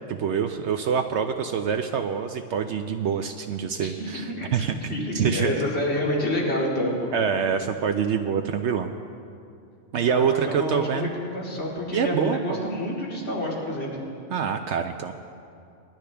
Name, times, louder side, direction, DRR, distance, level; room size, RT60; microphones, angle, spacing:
voice 1, 0.1-5.5 7.1-8.9 9.9-11.1 11.9-12.6 14.3-15.1, right 7 dB, 70° right, 6 dB, 0.8 m, -26 dB
voice 2, 3.8-7.1 10.1-14.0, left 1 dB, 60° left, -4 dB, 2.6 m, -28 dB
20.5 x 12.0 x 3.3 m, 2.5 s
omnidirectional pair, 1.3 m